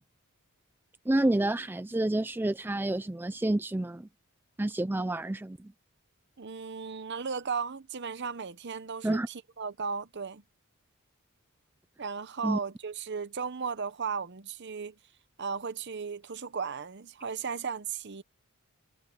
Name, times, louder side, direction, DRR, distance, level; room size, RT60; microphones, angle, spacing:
voice 1, 1.1-4.1 4.6-5.7 9.0-9.3 12.4-12.6, right 1 dB, 10° right, 0.3 m, -29 dB
voice 2, 6.4-10.4 12.0-14.9 15.4-18.2, right 5 dB, 50° right, 0.8 m, -36 dB
head